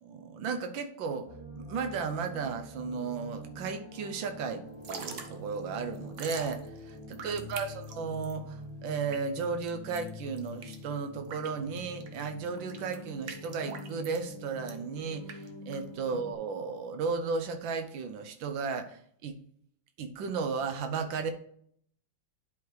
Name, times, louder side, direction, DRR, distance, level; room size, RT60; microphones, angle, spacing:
voice 1, 0.0-1.3 1.6-19.4 20.0-21.3, right 5 dB, 85° right, 8 dB, 1.5 m, -35 dB
sound 1, 1.3-16.3, left 1 dB, 20° left, 1.0 m, -45 dB
Drip / Trickle dribble, 4.7-16.3, right 5 dB, 55° right, 0.9 m, -46 dB
10.5 x 4.8 x 3.2 m, 0.64 s
omnidirectional pair, 2.1 m